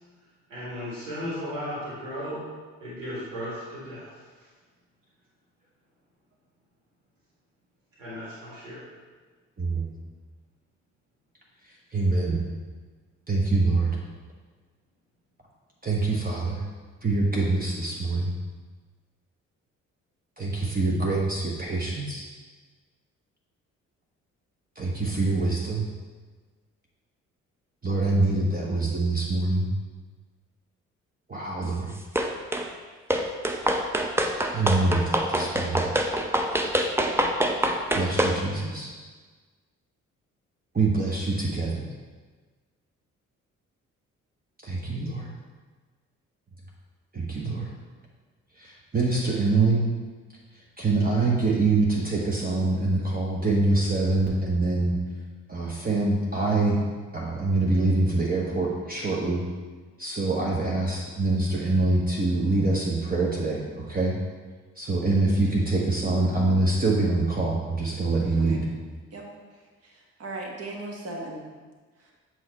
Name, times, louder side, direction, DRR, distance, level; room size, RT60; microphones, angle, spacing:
voice 1, 0.5-2.4 2.8-4.1 8.0-8.8, equal, 80° right, -8 dB, 1.7 m, -35 dB
voice 2, 9.6-9.9 11.9-12.4 13.3-14.0 15.8-16.6 17.0-18.3 20.4-22.3 24.8-25.9 27.8-29.7 31.3-31.9 34.5-35.9 37.9-38.9 40.7-41.9 44.6-45.3 47.1-47.8 48.6-49.9 50.8-55.0 55.5-56.8 57.1-59.4 60.0-64.2 64.8-68.7, right 3 dB, 25° right, -3 dB, 1.0 m, -25 dB
sound 1, 32.2-32.7 33.1-38.4, right 1 dB, 5° right, 0.5 m, -25 dB
voice 3, 69.8-71.4 72.0-72.1, right 2 dB, 40° right, 0 dB, 1.3 m, -37 dB
7.6 x 3.0 x 4.4 m, 1.4 s
figure-of-eight pair, 45°, 37 cm